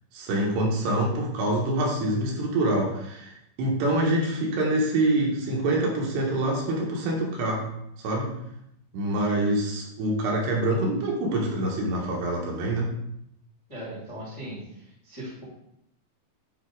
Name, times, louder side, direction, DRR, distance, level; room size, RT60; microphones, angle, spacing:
voice 1, 0.1-7.6 8.0-8.3 8.9-12.9, right 1 dB, 75° right, -2 dB, 3.3 m, -25 dB
voice 2, 13.7-14.6 15.0-15.4, right 1 dB, 15° left, -7 dB, 1.4 m, -38 dB
9.5 x 3.4 x 4.7 m, 0.80 s
omnidirectional pair, 5.3 m